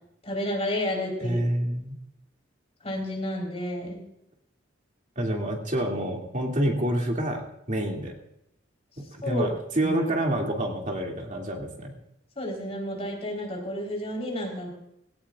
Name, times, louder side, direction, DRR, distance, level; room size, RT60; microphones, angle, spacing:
voice 1, 0.2-1.4 2.8-4.0 9.2-9.5 9.8-9.9 12.4-14.7, left 1 dB, 30° left, 0 dB, 4.0 m, -31 dB
voice 2, 1.2-2.0 5.2-7.4 7.7-8.1 9.0-11.9, right 1 dB, 40° right, 0 dB, 2.5 m, -28 dB
17.0 x 17.0 x 2.5 m, 0.78 s
head